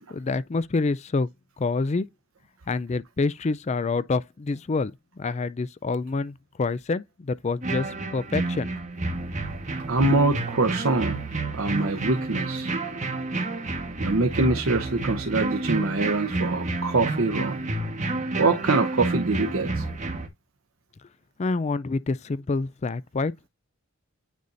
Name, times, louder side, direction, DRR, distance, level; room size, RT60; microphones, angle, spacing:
voice 1, 0.1-1.3 1.6-2.1 2.7-4.9 5.2-8.7 21.4-23.3, left 3 dB, 35° left, 0.4 m, -27 dB
sound 1, 7.6-20.3, right 2 dB, 35° right, 1.5 m, -30 dB
voice 2, 9.9-11.2 11.5-12.7 14.0-17.6 18.4-19.9, right 3 dB, 85° right, 0.9 m, -24 dB
9.4 x 4.1 x 2.6 m
head